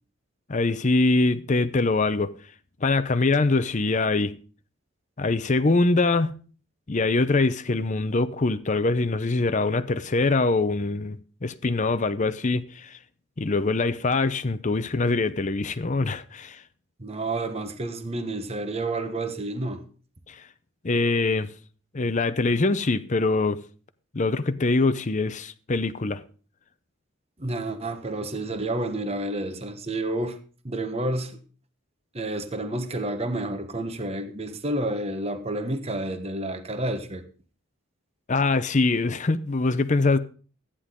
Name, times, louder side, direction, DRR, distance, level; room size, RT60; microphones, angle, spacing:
voice 1, 0.5-2.3 2.8-4.3 5.2-6.3 6.9-13.0 13.4-16.6 20.3-20.4 20.8-21.5 21.9-23.6 24.1-26.2 38.3-40.2, left 3 dB, 35° left, 0.6 m, -23 dB
voice 2, 17.0-19.8 27.4-30.4 30.6-31.4 32.1-37.2, right 2 dB, 30° right, 1.1 m, -30 dB
14.0 x 10.0 x 3.7 m
head